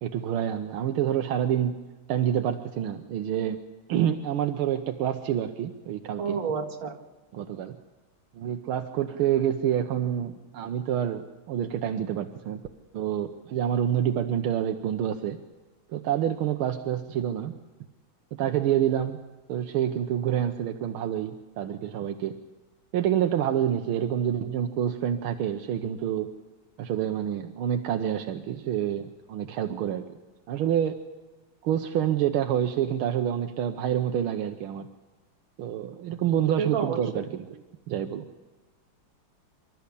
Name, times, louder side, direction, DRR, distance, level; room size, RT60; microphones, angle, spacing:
voice 1, 0.0-1.8 2.1-3.6 3.9-6.4 7.3-7.8 8.4-12.6 12.9-15.4 15.9-17.5 18.3-19.2 19.5-22.3 22.9-26.3 26.8-30.0 30.5-31.0 31.6-34.9 35.6-37.5 37.9-38.3, right 10 dB, 85° right, 6 dB, 1.7 m, -27 dB
voice 2, 6.2-7.0 36.6-37.2, right 5 dB, 65° right, 1 dB, 2.5 m, -30 dB
26.0 x 13.0 x 8.4 m, 1.3 s
omnidirectional pair, 2.3 m